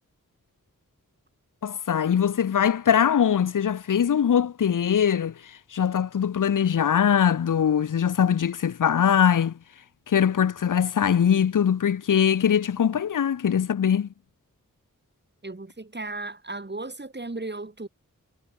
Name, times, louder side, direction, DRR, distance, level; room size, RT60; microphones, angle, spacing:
voice 1, 1.6-9.6 10.1-14.1, left 8 dB, 65° left, 0.7 m, -22 dB
voice 2, 15.4-17.9, right 2 dB, 30° right, 3.1 m, -35 dB
wide cardioid pair, 60°, 33 cm